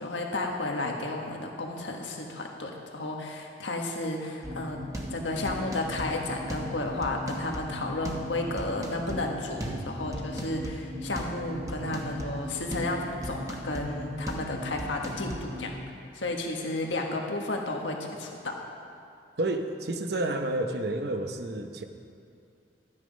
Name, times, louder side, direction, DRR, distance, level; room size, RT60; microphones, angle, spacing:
voice 1, 0.0-4.8 5.1-15.7 16.1-18.6, left 2 dB, 90° left, 1 dB, 1.6 m, -32 dB
sound 1, 4.4-15.8, equal, 20° right, 1.1 m, -37 dB
voice 2, 19.4-21.8, right 2 dB, 60° right, 6 dB, 0.9 m, -30 dB
13.0 x 9.6 x 5.3 m, 2.5 s
head